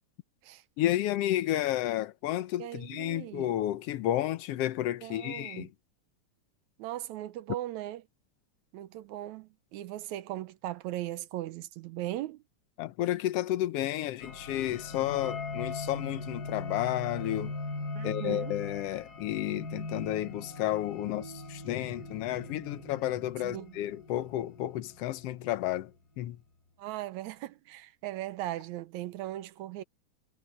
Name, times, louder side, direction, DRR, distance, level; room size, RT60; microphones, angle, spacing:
voice 1, 0.8-5.7 12.8-17.5 18.0-25.9 26.2-26.4, left 14 dB, 70° left, 1.6 m, -31 dB
voice 2, 2.6-3.5 5.0-5.7 6.8-8.0 8.7-12.4 17.9-18.6 23.4-23.8 26.8-29.8, right 14 dB, 75° right, 2.0 m, -38 dB
sound 1, 14.2-25.5, left 3 dB, 30° left, 3.9 m, -40 dB
omnidirectional pair, 3.5 m